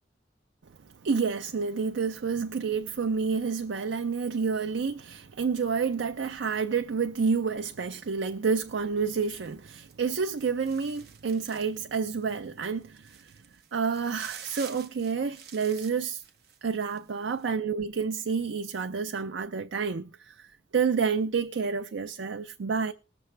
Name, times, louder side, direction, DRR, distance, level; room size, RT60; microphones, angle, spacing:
voice 1, 1.0-13.3 13.7-16.2 16.6-22.9, right 5 dB, 90° right, 0.5 m, -29 dB
sound 1, 9.4-11.9 12.2-12.4 12.8-17.0 17.3-17.5, right 8 dB, 60° right, 1.0 m, -48 dB
20.5 x 6.9 x 3.2 m
head